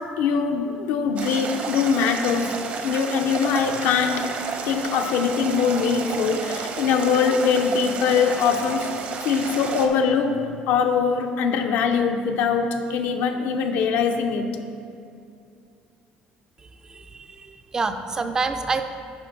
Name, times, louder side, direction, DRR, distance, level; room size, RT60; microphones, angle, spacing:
voice 1, 0.2-2.5 2.8-4.3 4.7-8.9 9.2-14.5, left 6 dB, 80° left, 5 dB, 0.6 m, -22 dB
sound 1, 1.2-9.9, right 5 dB, 50° right, 0.7 m, -31 dB
voice 2, 16.6-18.8, right 4 dB, 20° right, 8 dB, 0.4 m, -28 dB
9.7 x 3.4 x 6.0 m, 2.5 s
cardioid pair, 150°, 3 cm